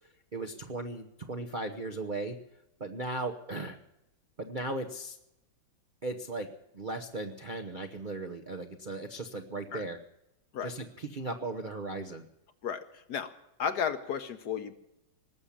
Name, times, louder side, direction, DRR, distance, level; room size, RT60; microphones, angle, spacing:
voice 1, 0.3-2.4 2.8-3.8 4.4-5.2 6.0-6.5 6.7-10.0 10.6-12.2, right 2 dB, 45° right, 3 dB, 0.6 m, -37 dB
voice 2, 12.6-13.3 13.6-14.7, left 7 dB, 60° left, 10 dB, 1.3 m, -33 dB
19.0 x 7.2 x 10.0 m, 0.86 s
omnidirectional pair, 2.2 m